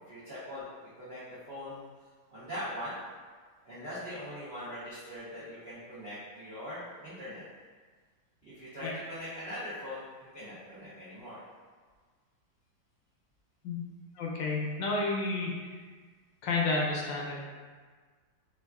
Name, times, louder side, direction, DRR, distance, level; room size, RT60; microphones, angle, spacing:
voice 1, 0.1-0.7 1.0-1.2 1.5-1.8 2.3-3.0 3.6-7.4 8.4-10.0 10.3-11.4, left 1 dB, 80° right, -11 dB, 0.5 m, -41 dB
voice 2, 14.2-15.5 16.4-17.4, left 3 dB, 75° left, -2 dB, 1.2 m, -30 dB
3.4 x 2.3 x 2.2 m, 1.5 s
omnidirectional pair, 2.1 m